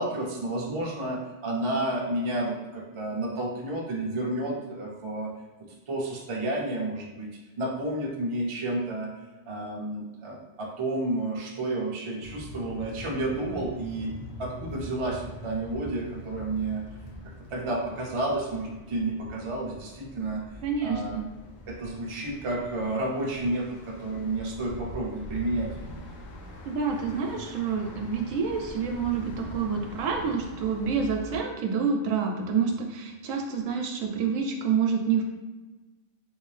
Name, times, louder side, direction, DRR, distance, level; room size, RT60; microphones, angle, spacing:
voice 1, 0.0-5.3 5.9-7.3 7.6-9.1 9.5-14.1 14.4-16.8 17.5-20.4 20.8-21.2 21.7-25.7, right 2 dB, 40° right, -2 dB, 0.4 m, -31 dB
sound 1, 12.2-31.4, equal, 85° left, 1.0 m, -43 dB
voice 2, 20.6-21.2 26.7-35.2, right 6 dB, 90° right, 3 dB, 1.0 m, -28 dB
3.3 x 2.6 x 3.2 m, 1.2 s
omnidirectional pair, 1.3 m